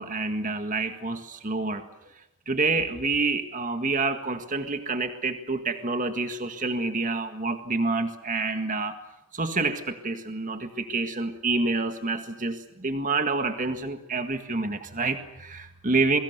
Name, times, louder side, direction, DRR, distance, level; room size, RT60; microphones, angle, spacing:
voice 1, 0.0-1.8 2.5-9.0 9.3-16.2, right 3 dB, 35° right, 7 dB, 1.8 m, -28 dB
27.0 x 23.0 x 6.8 m, 0.88 s
head